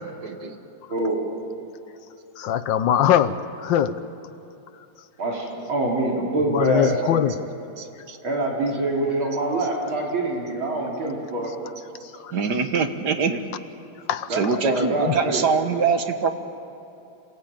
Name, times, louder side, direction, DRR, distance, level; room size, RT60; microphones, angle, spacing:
voice 1, 0.2-0.6 6.8-6.9 7.8-8.2 12.3-13.4 14.3-16.3, right 5 dB, 55° right, 7 dB, 1.9 m, -24 dB
voice 2, 0.9-1.2 5.2-7.3 8.2-11.5 14.3-15.4, right 2 dB, 85° right, -2 dB, 4.3 m, -25 dB
voice 3, 2.4-3.3 3.6-3.9 6.5-7.3 14.1-14.3, left 10 dB, 70° left, 12 dB, 1.5 m, -20 dB
27.0 x 18.0 x 8.9 m, 2.9 s
omnidirectional pair, 2.2 m